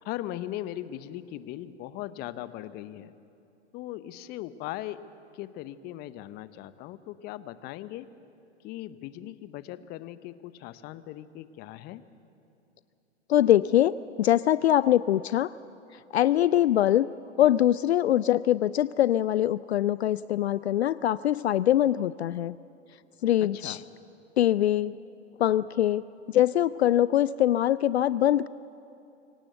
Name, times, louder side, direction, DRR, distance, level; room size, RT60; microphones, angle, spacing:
voice 1, 0.0-3.1 3.7-5.0 5.3-8.1 8.6-12.0 23.5-23.8, left 14 dB, 30° left, 15 dB, 0.8 m, -39 dB
voice 2, 13.3-15.5 16.1-17.1 17.4-22.6 23.2-23.8 24.4-24.9 25.4-28.5, left 12 dB, 65° left, 18 dB, 0.5 m, -23 dB
25.0 x 18.0 x 8.0 m, 2.7 s
figure-of-eight pair, 105°, 35 cm